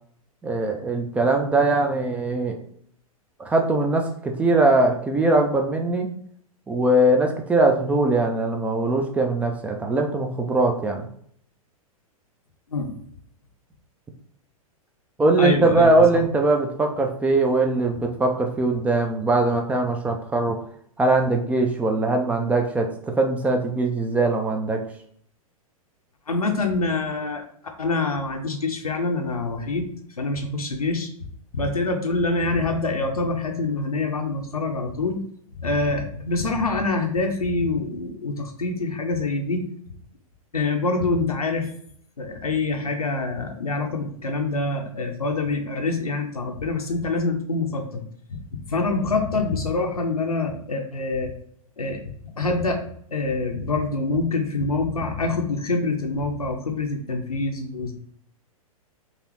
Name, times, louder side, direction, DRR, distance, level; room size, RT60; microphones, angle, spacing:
voice 1, 0.4-2.6 3.4-6.1 6.7-11.1 15.2-20.6 21.0-24.8, right 2 dB, 5° right, 3 dB, 0.3 m, -21 dB
voice 2, 15.4-16.0 26.3-27.4 27.8-29.9 30.2-31.1 31.5-35.2 35.6-39.7 40.5-41.7 42.2-48.0 48.7-51.3 51.8-52.0 52.4-52.8 53.1-57.9, left 3 dB, 80° left, 3 dB, 0.6 m, -25 dB
4.0 x 2.8 x 3.0 m, 0.63 s
figure-of-eight pair, 105°, 19 cm